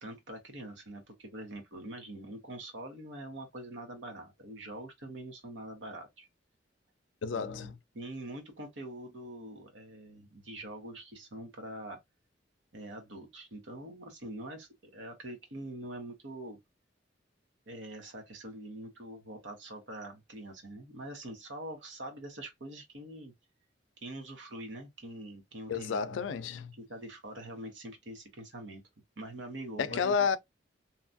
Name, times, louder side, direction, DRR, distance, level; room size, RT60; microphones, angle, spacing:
voice 1, 0.0-6.3 7.3-12.0 12.7-16.6 17.7-23.3 24.0-26.2 26.8-28.8 29.2-30.3, right 1 dB, 70° right, 1.1 m, -44 dB
voice 2, 7.2-7.7 25.7-26.7 29.8-30.4, left 6 dB, 80° left, 0.4 m, -31 dB
2.9 x 2.4 x 2.5 m
head